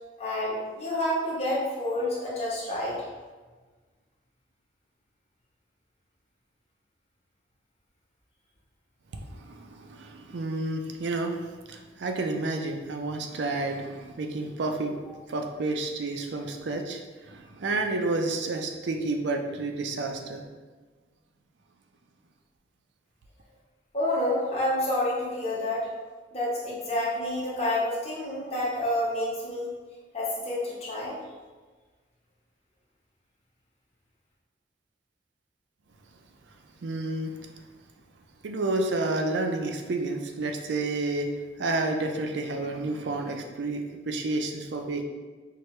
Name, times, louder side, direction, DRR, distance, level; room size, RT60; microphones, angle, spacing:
voice 1, 0.2-2.9 23.9-25.9 26.3-29.7 30.1-31.2, left 1 dB, 35° left, -7 dB, 1.0 m, -29 dB
voice 2, 9.1-11.4 11.7-15.0 15.3-20.5 36.8-37.4 38.4-41.3 41.6-45.0, right 2 dB, 75° right, 4 dB, 0.4 m, -30 dB
4.6 x 2.2 x 3.1 m, 1.4 s
head